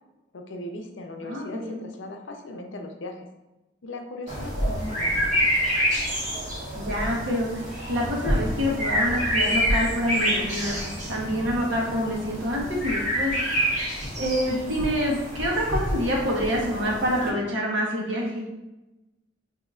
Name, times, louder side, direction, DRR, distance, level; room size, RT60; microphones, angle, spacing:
voice 1, 0.3-3.3 3.8-5.4, left 2 dB, 80° left, 4 dB, 0.5 m, -38 dB
voice 2, 1.2-1.8 6.7-7.5 7.9-10.8 11.1-13.3 14.2-18.4, equal, 90° right, -3 dB, 1.1 m, -26 dB
sound 1, 4.3-17.3, equal, 40° right, 1.3 m, -27 dB
5.4 x 2.7 x 2.4 m, 1.0 s
head